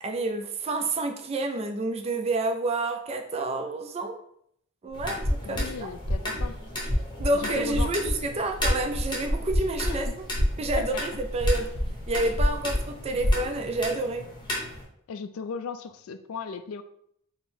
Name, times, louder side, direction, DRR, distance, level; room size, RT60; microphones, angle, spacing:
voice 1, 0.0-4.2 4.8-5.9 7.2-10.1 10.6-11.7 12.1-14.3, right 2 dB, 30° right, 5 dB, 0.3 m, -29 dB
sound 1, 4.9-14.8, equal, 20° left, 0.8 m, -35 dB
sound 2, 5.2-6.5 6.8-7.4 7.7-10.0 10.3-10.8 11.2-13.5, equal, 60° right, 1.1 m, -26 dB
voice 2, 5.4-6.9 7.3-7.9 9.9-10.2 10.8-11.0 15.1-16.8, left 5 dB, 75° left, 10 dB, 0.3 m, -37 dB
3.8 x 2.0 x 4.2 m, 0.71 s
head